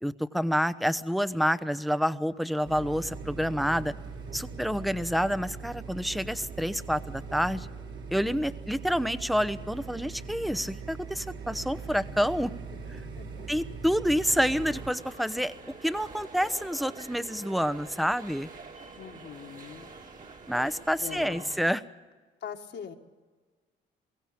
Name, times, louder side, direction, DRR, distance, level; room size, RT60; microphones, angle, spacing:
voice 1, 0.0-3.9 4.3-7.7 8.1-12.6 12.9-13.0 13.5-15.5 15.8-18.5 20.5-21.8, equal, ahead, 13 dB, 0.8 m, -28 dB
sound 1, 2.6-14.9, right 4 dB, 70° right, 4.0 m, -41 dB
voice 2, 13.2-13.5 19.0-20.0 21.0-21.5 22.4-22.9, left 7 dB, 65° left, 2 dB, 1.8 m, -42 dB
sound 2, 14.2-21.6, right 4 dB, 40° right, 2.6 m, -46 dB
22.5 x 16.5 x 8.6 m, 1.4 s
cardioid pair, 90°, 20 cm